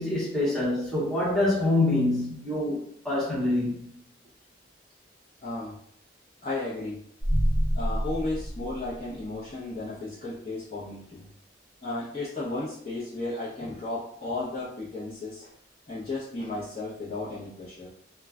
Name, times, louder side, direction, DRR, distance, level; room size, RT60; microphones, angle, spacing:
voice 1, 0.0-2.8 3.0-3.8, left 2 dB, 5° left, 0.8 m, -25 dB
voice 2, 5.4-5.8 6.4-7.0 7.7-11.3 11.8-15.5 15.9-17.9, left 2 dB, 35° left, 0.7 m, -34 dB
sound 1, 7.2-9.5, equal, 80° left, 0.8 m, -27 dB
2.3 x 2.1 x 3.5 m
head